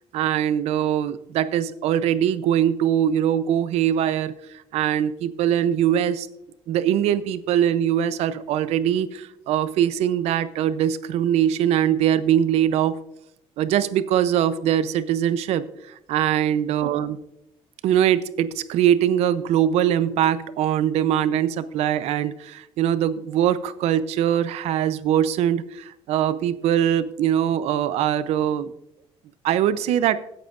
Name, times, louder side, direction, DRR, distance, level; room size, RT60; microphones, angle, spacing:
voice 1, 0.1-4.3 4.7-6.3 6.7-13.0 13.6-17.2 17.8-28.7 29.4-30.2, right 10 dB, 80° right, 14 dB, 0.6 m, -22 dB
16.5 x 9.0 x 2.5 m, 0.81 s
cardioid pair, 160°, 11 cm